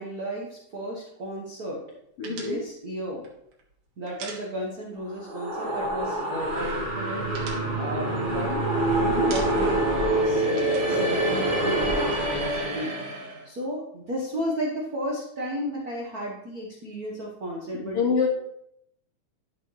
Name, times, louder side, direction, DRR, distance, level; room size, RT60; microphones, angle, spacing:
voice 1, 0.0-1.8 2.2-3.2 4.0-12.9 13.4-18.0, equal, 55° right, -3 dB, 1.0 m, -33 dB
voice 2, 2.2-2.6 9.0-9.3 17.7-18.3, left 5 dB, 65° left, 3 dB, 1.5 m, -26 dB
sound 1, 2.2-5.0 5.3-5.5 5.8-6.4 6.8-8.8 9.1-9.9 10.1-11.9, right 5 dB, 80° right, 2.9 m, -43 dB
sound 2, 5.0-13.4, right 1 dB, 20° right, 1.4 m, -26 dB
11.5 x 5.9 x 3.2 m, 0.74 s
omnidirectional pair, 3.6 m